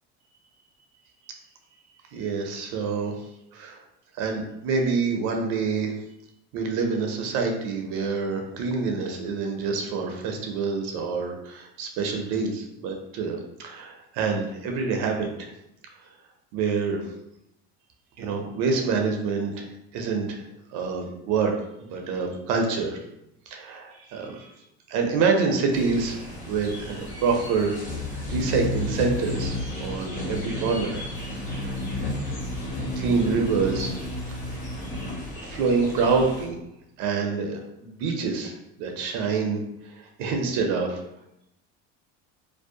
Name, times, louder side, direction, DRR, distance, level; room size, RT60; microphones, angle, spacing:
voice 1, 2.1-3.1 3.5-3.8 4.2-5.9 6.5-15.5 16.5-17.0 18.2-20.4 20.7-21.6 21.9-23.0 23.5-24.5 24.9-26.2 26.5-27.8 28.3-31.1 31.6-31.8 33.0-34.0 35.4-36.6 37.0-41.0, right 4 dB, 60° right, 3 dB, 0.5 m, -26 dB
sound 1, 25.7-36.4, left 1 dB, 55° left, 1.3 m, -32 dB
2.6 x 2.0 x 2.6 m, 0.81 s
supercardioid pair, 90°, 35 cm